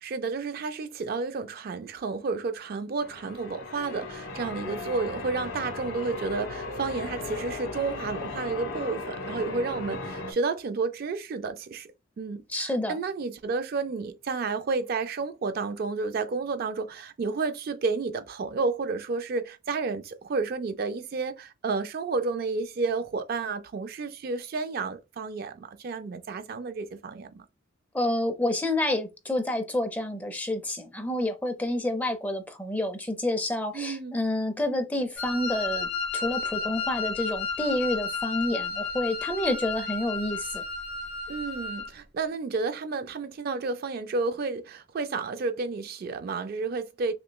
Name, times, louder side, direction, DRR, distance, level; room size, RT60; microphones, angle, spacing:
voice 1, 0.0-27.5 33.7-34.2 41.3-47.1, right 4 dB, 45° right, 0.3 m, -31 dB
Church bell, 3.0-10.3, left 3 dB, 75° left, 1.0 m, -37 dB
voice 2, 12.5-13.0 27.9-40.6, left 1 dB, 10° left, 0.5 m, -29 dB
Wind instrument woodwind instrument, 35.2-41.9, left 5 dB, 45° left, 1.7 m, -32 dB
5.8 x 2.1 x 2.2 m
head